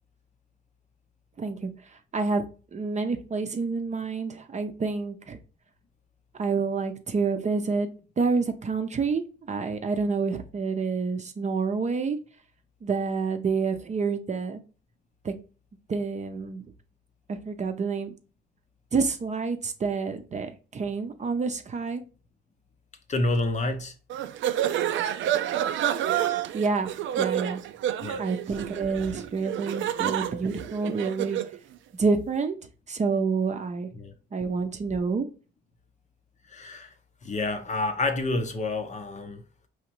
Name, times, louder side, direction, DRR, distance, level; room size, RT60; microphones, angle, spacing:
voice 1, 1.4-1.7 2.1-2.4 2.7-5.4 6.4-12.2 12.8-14.6 15.2-15.3 15.9-16.6 17.3-18.1 18.9-22.0 26.5-27.6 28.2-31.4 32.0-32.6 32.9-33.9 34.3-35.3, right 4 dB, 35° right, 0.6 m, -28 dB
voice 2, 23.1-23.9 28.0-28.2 33.9-34.1 36.5-36.9 37.2-39.4, left 2 dB, 35° left, 0.7 m, -28 dB
sound 1, 24.1-31.6, right 11 dB, 75° right, 0.4 m, -29 dB
4.8 x 3.1 x 3.0 m
cardioid pair, 90°, 20 cm